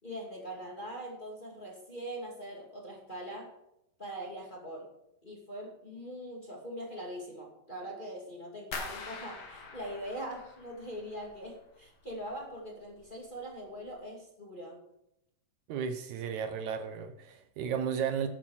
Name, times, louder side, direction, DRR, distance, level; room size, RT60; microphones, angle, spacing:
voice 1, 0.0-3.5 4.0-4.9 5.2-14.8, right 1 dB, 15° left, -1 dB, 2.0 m, -42 dB
sound 1, 8.7-11.6 11.9-12.6 12.9-13.3 13.8-13.9, left 4 dB, 50° left, 2.9 m, -44 dB
voice 2, 15.7-18.3, right 7 dB, 70° right, 8 dB, 2.1 m, -34 dB
12.0 x 8.0 x 6.3 m, 0.82 s
omnidirectional pair, 3.7 m